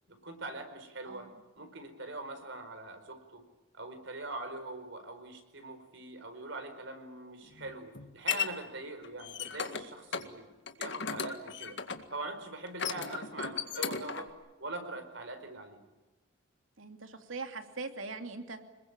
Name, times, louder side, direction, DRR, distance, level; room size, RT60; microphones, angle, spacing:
voice 1, 0.1-1.3 1.6-3.4 3.7-10.5 10.8-11.8 12.1-14.3 14.6-15.8, right 2 dB, 65° right, 7 dB, 4.9 m, -43 dB
sound 1, 7.4-8.5 9.0-9.8 10.1-10.3 10.7-12.1 12.7-14.3, left 6 dB, 60° left, 2.0 m, -35 dB
voice 2, 16.8-18.6, right 3 dB, 80° right, 6 dB, 2.8 m, -41 dB
26.5 x 21.5 x 8.9 m, 1.1 s
head